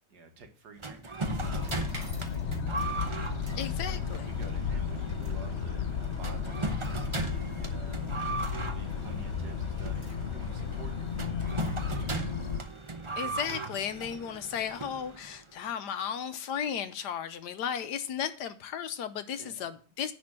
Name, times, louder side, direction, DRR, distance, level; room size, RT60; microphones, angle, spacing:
voice 1, 0.1-2.9 3.5-8.1 8.4-12.8 19.4-19.5, right 4 dB, 65° right, 2.0 m, -51 dB
sound 1, 0.8-15.5, right 3 dB, 25° right, 0.6 m, -38 dB
sound 2, 1.2-12.6, left 6 dB, 55° left, 0.7 m, -34 dB
sound 3, 1.6-13.0, right 3 dB, 50° right, 2.1 m, -54 dB
voice 2, 3.6-4.3 13.2-20.1, left 8 dB, 75° left, 1.3 m, -35 dB
10.5 x 4.3 x 7.5 m
omnidirectional pair, 1.9 m